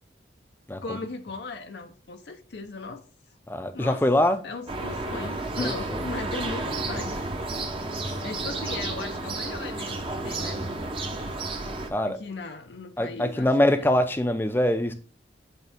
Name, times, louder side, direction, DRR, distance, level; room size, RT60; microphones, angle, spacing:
voice 1, 0.8-3.0 3.7-4.0 4.4-7.2 8.2-10.6 12.0-13.9, left 3 dB, 65° left, 0.6 m, -37 dB
voice 2, 3.5-4.4 5.6-5.7 8.0-8.2 11.9-12.2 13.0-14.9, left 1 dB, 10° left, 0.5 m, -23 dB
sound 1, 4.7-11.9, right 2 dB, 30° right, 0.8 m, -32 dB
8.1 x 3.6 x 3.5 m
head